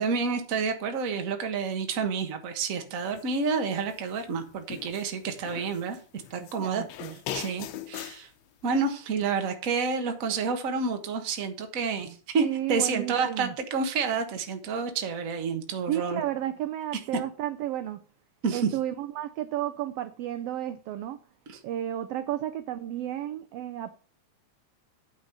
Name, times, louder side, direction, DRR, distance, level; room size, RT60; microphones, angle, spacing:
voice 1, 0.0-6.8 7.3-8.3 8.6-16.2 18.4-18.7 21.5-21.6, right 5 dB, 50° right, 1.0 m, -29 dB
sound 1, 3.1-3.4 3.8-5.1 5.4-6.6 6.9-8.2, left 11 dB, 75° left, 1.7 m, -40 dB
voice 2, 6.3-7.2 12.4-13.5 15.9-18.0 18.5-21.2 21.6-24.0, right 12 dB, 80° right, 1.4 m, -32 dB
9.1 x 5.2 x 6.5 m
omnidirectional pair, 3.4 m